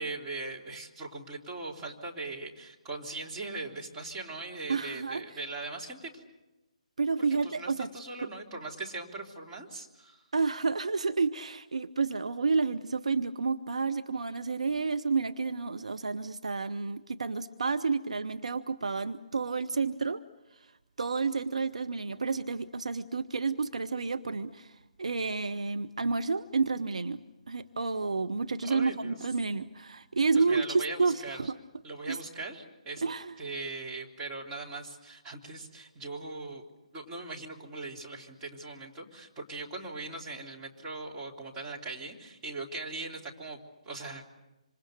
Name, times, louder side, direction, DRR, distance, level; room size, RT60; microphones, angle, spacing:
voice 1, 0.0-6.2 7.2-10.2 28.6-29.2 30.3-31.4 31.8-33.0 33.4-36.6 36.9-43.6 43.8-44.2, right 3 dB, 20° right, -3 dB, 3.3 m, -40 dB
voice 2, 4.7-5.2 7.0-7.9 10.3-20.2 21.0-31.5 32.1-32.2 33.0-33.3, right 4 dB, 65° right, 10 dB, 0.8 m, -30 dB
26.5 x 26.5 x 6.6 m, 1.0 s
figure-of-eight pair, 140°, 4 cm